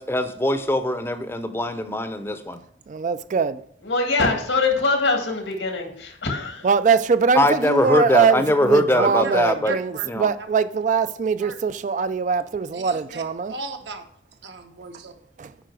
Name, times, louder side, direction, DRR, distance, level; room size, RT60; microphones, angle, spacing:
voice 1, 0.0-2.6 7.3-9.7 10.1-10.3, left 1 dB, 15° left, 0.6 m, -22 dB
voice 2, 2.9-3.6 6.6-13.5 15.4-15.5, right 5 dB, 40° right, 0.3 m, -22 dB
voice 3, 3.8-6.7, left 3 dB, 85° left, 2.0 m, -23 dB
voice 4, 8.9-9.3 9.6-10.1 10.7-10.8 11.4-11.5 12.7-13.2 13.5-14.0 14.4-15.1, right 4 dB, 70° right, 1.1 m, -34 dB
9.0 x 5.0 x 4.8 m
head